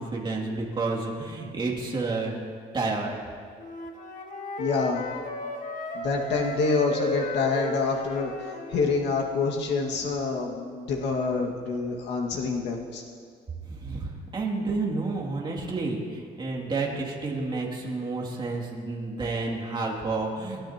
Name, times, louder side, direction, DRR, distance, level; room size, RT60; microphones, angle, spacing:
voice 1, 0.0-2.3 2.7-3.2 13.7-20.7, right 3 dB, 25° right, -2 dB, 2.6 m, -30 dB
Wind instrument woodwind instrument, 3.6-8.8, left 1 dB, 45° left, 1.6 m, -35 dB
voice 2, 4.6-5.0 5.9-8.3 8.7-13.0, left 4 dB, 80° left, -1 dB, 1.9 m, -27 dB
29.5 x 13.0 x 2.9 m, 2.1 s
cardioid pair, 155°, 18 cm